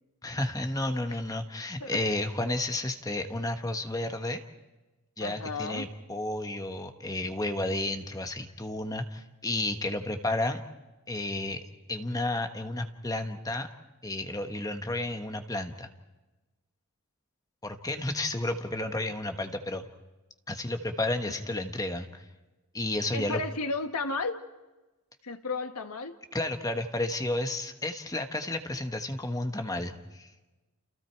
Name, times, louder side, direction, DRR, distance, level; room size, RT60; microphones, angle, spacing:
voice 1, 0.2-4.4 5.2-10.6 11.1-11.6 11.9-13.7 14.0-15.9 17.6-19.9 20.5-22.3 22.7-23.4 26.3-30.3, left 2 dB, 15° left, 6 dB, 1.3 m, -32 dB
voice 2, 5.2-5.9 23.1-24.4 25.2-26.2, left 3 dB, 90° left, 7 dB, 1.7 m, -33 dB
29.5 x 29.5 x 4.6 m, 1.1 s
head